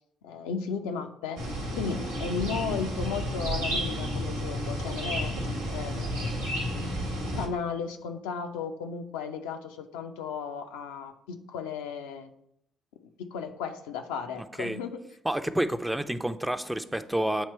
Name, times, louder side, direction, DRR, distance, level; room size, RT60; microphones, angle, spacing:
voice 1, 0.2-1.4 1.7-5.3 5.7-6.9 7.2-12.3 13.0-15.0, left 6 dB, 75° left, 5 dB, 0.4 m, -35 dB
sound 1, 1.4-7.5, equal, 85° right, 0.9 m, -31 dB
voice 2, 14.4-14.8 15.2-17.5, right 1 dB, 5° right, 9 dB, 0.5 m, -29 dB
8.1 x 2.9 x 4.3 m, 0.75 s
figure-of-eight pair, 45°, 0 cm